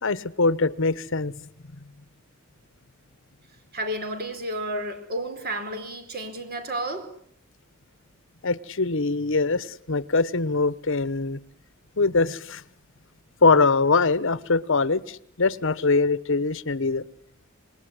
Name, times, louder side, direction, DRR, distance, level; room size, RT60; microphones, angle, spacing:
voice 1, 0.0-1.3 8.4-11.4 12.0-12.6 13.4-17.0, left 3 dB, 70° left, 1.1 m, -23 dB
voice 2, 3.7-7.1, right 1 dB, 50° right, 4.6 m, -31 dB
27.5 x 21.0 x 9.8 m
head